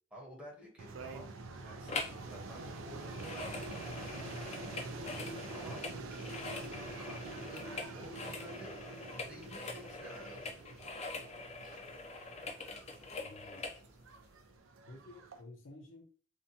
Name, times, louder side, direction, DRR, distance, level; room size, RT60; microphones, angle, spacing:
voice 1, 0.1-1.3 1.6-4.0 5.5-5.8 6.8-7.7 7.9-8.8 9.1-10.6, equal, 5° right, -3 dB, 0.9 m, -52 dB
sound 1, 0.8-15.4, right 3 dB, 90° right, 0.4 m, -46 dB
sound 2, 1.9-2.2 2.5-13.8 14.3-14.4, left 3 dB, 35° left, 0.4 m, -44 dB
voice 2, 13.2-13.7 14.9-16.0, left 2 dB, 75° left, 2 dB, 0.6 m, -53 dB
2.7 x 2.2 x 2.7 m, 0.41 s
head